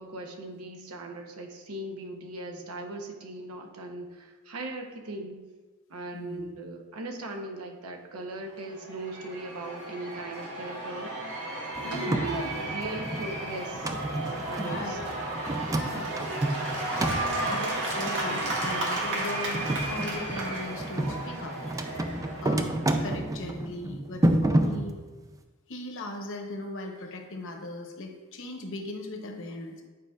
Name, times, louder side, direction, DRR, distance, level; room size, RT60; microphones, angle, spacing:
voice 1, 0.0-5.4 5.9-11.1 11.7-14.0 14.2-15.2, right 2 dB, 75° right, 3 dB, 0.8 m, -39 dB
voice 2, 6.1-6.5 11.8-12.4 14.6-15.0 15.7-16.2 16.9-21.6 22.4-24.9 25.7-29.8, left 2 dB, 60° left, 3 dB, 0.8 m, -38 dB
Cheering / Applause / Crowd, 8.5-23.3, right 2 dB, 60° right, 1.4 m, -34 dB
sound 1, 11.7-25.3, right 1 dB, 15° right, 0.3 m, -31 dB
9.4 x 4.9 x 2.4 m, 1.3 s
head